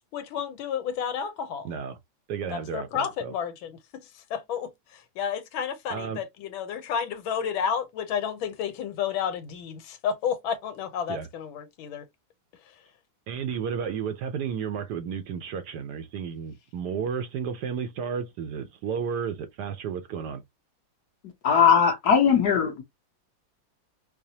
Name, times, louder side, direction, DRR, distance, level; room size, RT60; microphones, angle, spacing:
voice 1, 0.1-1.7 2.5-3.7 4.3-12.1, left 7 dB, 90° left, 1.6 m, -31 dB
voice 2, 1.6-2.0 2.3-3.3 5.9-6.2 11.1-11.3 13.3-20.4, right 7 dB, 70° right, 1.0 m, -32 dB
voice 3, 21.4-22.8, left 7 dB, 60° left, 1.3 m, -19 dB
4.8 x 2.0 x 2.7 m
omnidirectional pair, 2.1 m